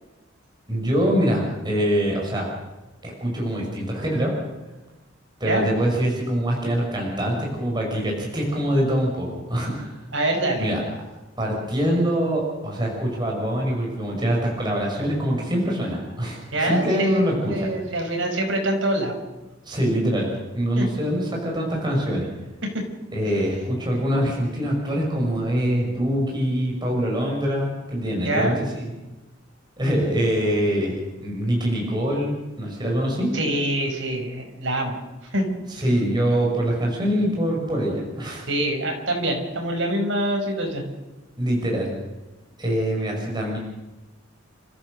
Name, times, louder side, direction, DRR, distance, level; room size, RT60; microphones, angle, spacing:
voice 1, 0.7-2.5 3.0-4.3 5.4-9.9 10.5-10.8 11.4-16.4 16.7-17.7 19.7-20.3 20.5-22.3 23.1-28.9 29.8-33.3 35.8-38.4 41.4-41.9 42.6-43.6, equal, 20° right, -2 dB, 5.7 m, -24 dB
voice 2, 10.1-10.7 16.5-19.1 20.8-20.9 22.6-22.9 28.2-28.6 33.3-35.0 35.3-35.5 38.5-40.8, right 1 dB, 70° right, 2 dB, 5.1 m, -25 dB
29.5 x 14.5 x 6.5 m, 1.1 s
head